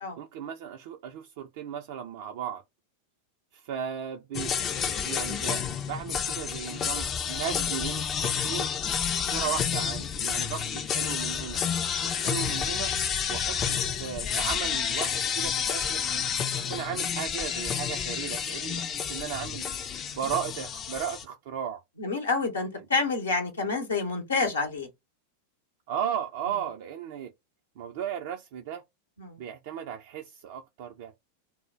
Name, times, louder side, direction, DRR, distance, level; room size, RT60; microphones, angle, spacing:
voice 1, 0.2-2.6 3.5-8.7 9.1-11.6 12.0-12.9 13.3-16.0 16.6-19.7 20.1-21.8 25.9-27.3 27.8-28.8 29.4-31.2, right 9 dB, 50° right, 0.3 m, -36 dB
sound 1, 4.3-21.2, left 7 dB, 25° left, 0.4 m, -30 dB
voice 2, 9.0-9.3 22.0-24.9 29.2-29.4, left 3 dB, 70° left, 0.8 m, -29 dB
2.1 x 2.0 x 3.5 m
figure-of-eight pair, 90°, 0 cm